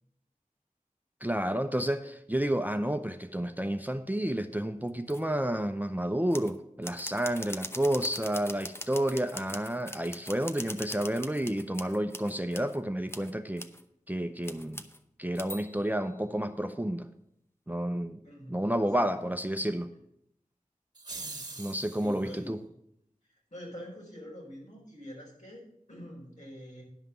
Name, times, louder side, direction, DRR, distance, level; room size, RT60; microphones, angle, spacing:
voice 1, 1.2-13.6 14.1-14.8 15.2-17.1 17.7-18.2 18.5-19.9 21.6-22.6, right 1 dB, 10° right, 8 dB, 0.6 m, -30 dB
sound 1, 4.9-5.2 6.3-6.6 6.8-12.8 13.1-13.3 13.6-13.8 14.4-15.0 15.3-16.0, left 1 dB, 20° left, 0.7 m, -42 dB
voice 2, 18.2-19.1 22.0-22.6 23.5-26.8, equal, 60° left, -3 dB, 4.4 m, -46 dB
sound 2, 20.9-22.3, right 3 dB, 30° right, 2.0 m, -42 dB
10.5 x 5.7 x 6.9 m, 0.75 s
wide cardioid pair, 45°, 14 cm